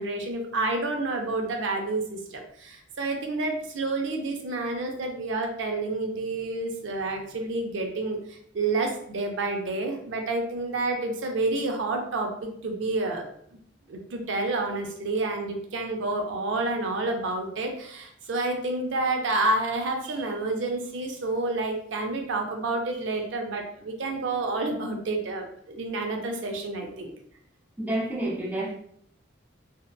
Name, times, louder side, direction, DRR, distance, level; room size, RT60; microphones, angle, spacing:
voice 1, 0.0-13.2 13.9-27.1, right 2 dB, 80° right, 3 dB, 0.5 m, -29 dB
voice 2, 27.8-28.7, right 1 dB, 10° right, -2 dB, 0.3 m, -29 dB
2.7 x 2.1 x 2.2 m, 0.67 s
head